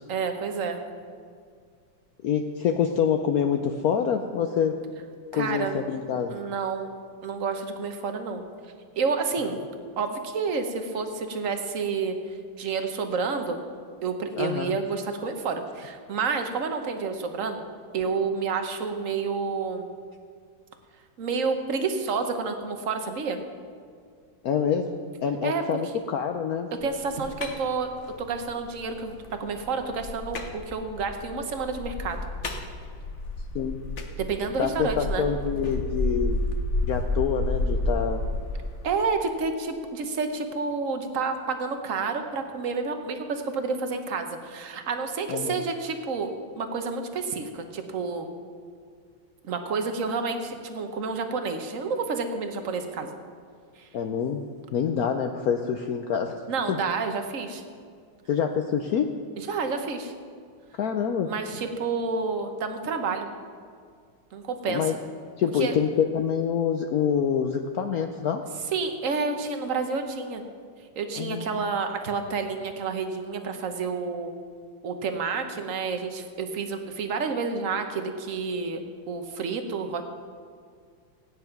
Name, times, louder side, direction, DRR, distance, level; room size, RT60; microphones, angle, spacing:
voice 1, 0.1-0.8 5.3-5.8 6.3-6.9 7.2-8.4 9.0-9.6 10.0-13.6 14.0-17.7 17.9-19.9 21.2-23.4 25.4-25.6 26.8-27.9 28.2-32.3 34.2-35.2 38.8-48.3 49.4-53.2 53.8-53.9 56.5-57.6 59.4-60.1 61.2-63.3 64.3-64.9 65.6-65.7 68.7-70.4 70.9-74.3 74.8-80.0, right 4 dB, 50° right, 6 dB, 1.1 m, -29 dB
voice 2, 2.2-4.7 5.3-6.4 14.4-14.8 24.4-24.9 25.2-26.7 33.5-33.7 34.6-36.4 36.8-38.2 45.3-45.6 53.9-54.4 54.7-56.4 56.7-56.8 58.3-59.1 60.8-61.3 64.7-64.9 65.4-68.4 71.2-71.6, left 7 dB, 85° left, 5 dB, 0.8 m, -26 dB
sound 1, 26.8-39.0, left 2 dB, 45° left, 1.0 m, -31 dB
16.5 x 9.7 x 5.9 m, 2.1 s
omnidirectional pair, 2.4 m